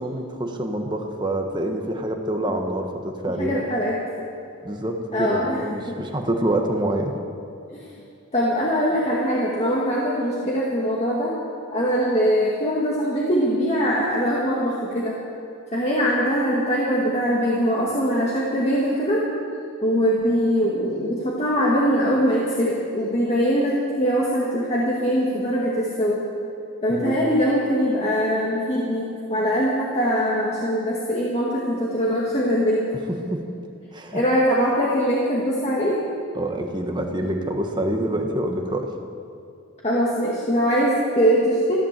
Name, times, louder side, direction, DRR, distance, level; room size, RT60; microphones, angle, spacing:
voice 1, 0.0-3.6 4.6-7.1 26.9-27.2 33.1-33.4 33.9-34.2 36.3-38.9, right 1 dB, 20° right, 3 dB, 1.3 m, -26 dB
voice 2, 3.4-4.0 5.1-5.6 5.9-6.0 8.3-11.3 11.7-15.2 15.7-19.3 19.8-26.3 26.8-32.9 34.1-36.0 39.8-41.8, equal, 30° left, -5 dB, 1.9 m, -22 dB
14.5 x 12.0 x 7.5 m, 2.5 s
head